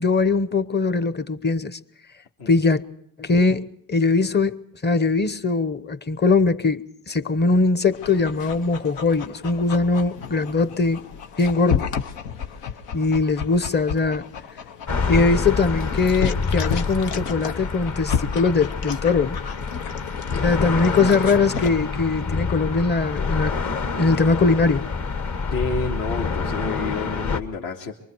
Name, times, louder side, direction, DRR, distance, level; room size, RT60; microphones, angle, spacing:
voice 1, 0.0-1.8 2.5-2.8 3.2-4.6 4.8-11.0 11.4-11.9 12.9-14.3 15.1-19.4 20.4-23.5 24.0-24.9, left 3 dB, 25° left, 0.9 m, -21 dB
Dog, 7.9-21.7, left 7 dB, 80° left, 1.2 m, -32 dB
sound 1, 14.9-27.4, left 4 dB, 40° left, 1.5 m, -27 dB
voice 2, 25.5-27.9, left 4 dB, 65° left, 2.3 m, -29 dB
24.0 x 24.0 x 4.6 m
supercardioid pair, 75°, 42 cm